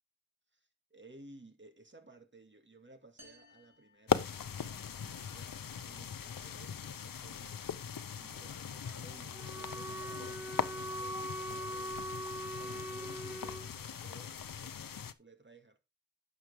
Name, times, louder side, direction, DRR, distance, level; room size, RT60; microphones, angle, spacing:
voice 1, 0.5-4.2 5.0-7.6 8.2-12.1 12.5-15.8, right 2 dB, 35° right, 2.2 m, -58 dB
sound 1, 3.2-4.9, equal, 50° right, 3.7 m, -61 dB
sound 2, 4.1-15.1, left 7 dB, 75° left, 0.8 m, -39 dB
Wind instrument woodwind instrument, 9.3-13.7, right 1 dB, 5° right, 0.8 m, -41 dB
11.0 x 7.4 x 3.5 m
wide cardioid pair, 60°, 34 cm